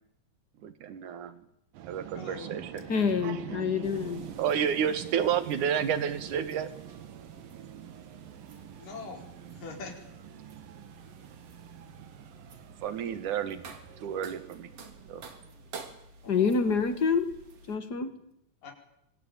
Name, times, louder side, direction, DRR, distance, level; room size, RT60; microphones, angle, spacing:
voice 1, 0.6-1.4 1.9-2.8 4.4-6.7 12.8-13.6 14.0-14.7 15.1-15.2, right 8 dB, 65° right, 12 dB, 3.1 m, -30 dB
sound 1, 1.7-15.7, right 11 dB, 80° right, 3.1 m, -46 dB
voice 2, 2.1-2.9 8.8-9.2 9.5-9.9 16.2-16.5 18.6-18.7, left 4 dB, 70° left, 3 dB, 6.3 m, -43 dB
voice 3, 2.9-4.3 16.3-18.2, left 5 dB, 40° left, 11 dB, 1.6 m, -27 dB
sound 2, 3.8-17.8, right 3 dB, 45° right, 3.6 m, -51 dB
26.0 x 24.5 x 9.1 m, 0.77 s
omnidirectional pair, 4.0 m